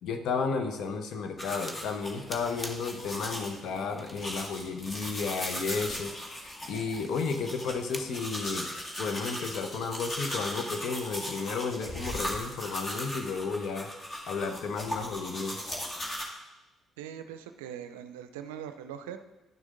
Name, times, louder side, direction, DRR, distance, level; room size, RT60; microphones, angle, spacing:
voice 1, 0.0-6.1 6.7-8.7 9.0-13.9 14.3-15.6, left 5 dB, 65° left, 6 dB, 0.9 m, -33 dB
sound 1, 1.4-16.2, left 1 dB, 30° left, 2.0 m, -38 dB
sound 2, 1.7-1.9 2.3-3.0 3.5-3.6 4.0-5.6 7.6-8.4, equal, 5° left, 1.1 m, -45 dB
voice 2, 17.0-19.2, right 9 dB, 80° right, 9 dB, 0.5 m, -41 dB
10.5 x 6.3 x 3.7 m, 1.1 s
hypercardioid pair, 45°, 0 cm